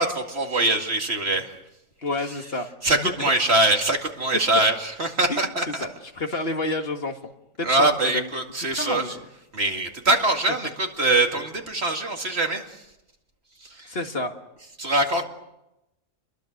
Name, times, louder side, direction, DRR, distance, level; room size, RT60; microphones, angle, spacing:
voice 1, 0.0-1.5 2.8-5.9 7.6-9.0 9.5-12.6 13.6-13.9 14.8-15.2, right 2 dB, 55° right, 3 dB, 2.6 m, -23 dB
voice 2, 2.0-3.3 5.3-5.5 5.8-7.2 7.6-8.3 8.7-9.3 13.9-14.4, left 2 dB, 50° left, 5 dB, 2.0 m, -30 dB
30.0 x 22.5 x 6.6 m, 0.91 s
omnidirectional pair, 1.3 m